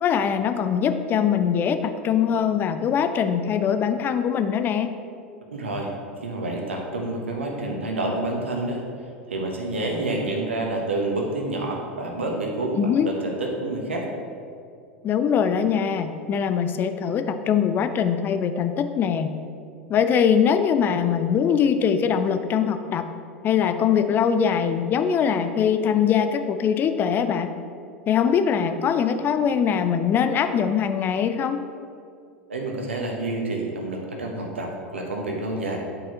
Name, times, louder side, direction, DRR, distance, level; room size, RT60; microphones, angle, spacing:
voice 1, 0.0-4.9 12.8-13.1 15.0-19.3 19.9-23.1 23.4-27.5 28.1-31.7, left 7 dB, 30° left, 9 dB, 0.5 m, -22 dB
voice 2, 5.5-5.9 6.2-8.8 9.3-14.1 32.5-35.8, right 2 dB, 80° right, 0 dB, 1.2 m, -28 dB
10.5 x 4.8 x 2.9 m, 2.4 s
figure-of-eight pair, 85°, 6 cm